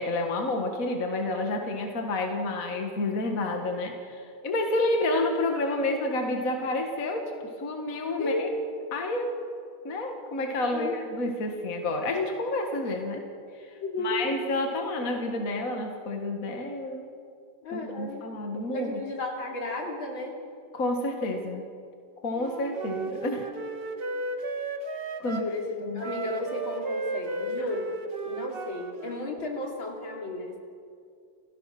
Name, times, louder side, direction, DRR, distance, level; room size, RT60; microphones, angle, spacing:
voice 1, 0.0-7.3 7.6-8.5 8.9-9.3 9.8-13.2 13.6-13.7 14.0-17.0 17.7-19.0 20.7-21.6 22.2-23.5 25.2-25.4 25.8-26.0, left 2 dB, 45° left, 3 dB, 2.0 m, -29 dB
voice 2, 8.2-8.5 10.7-10.9 13.8-14.2 17.6-18.3 18.7-20.4 25.2-25.7 25.9-27.9 28.3-30.6, left 1 dB, 70° left, 0 dB, 3.6 m, -33 dB
Wind instrument woodwind instrument, 22.3-25.5 26.0-29.3, right 2 dB, 35° right, 1.2 m, -34 dB
30.0 x 16.0 x 6.0 m, 2.3 s
omnidirectional pair, 2.3 m